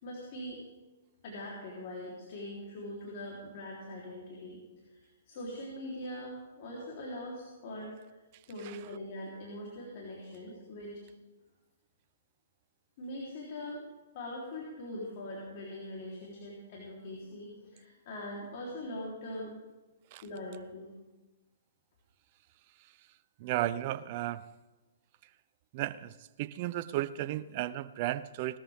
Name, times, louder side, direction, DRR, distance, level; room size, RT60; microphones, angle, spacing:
voice 1, 0.0-0.6 1.2-4.6 4.9-7.9 8.5-10.9 13.0-13.8 14.1-19.5 20.2-20.9, left 1 dB, 50° left, -4 dB, 3.8 m, -42 dB
voice 2, 23.4-24.4 25.7-26.1 26.4-28.6, right 14 dB, 45° right, 14 dB, 0.6 m, -34 dB
19.0 x 13.5 x 3.7 m, 1.1 s
hypercardioid pair, 135°, 0 cm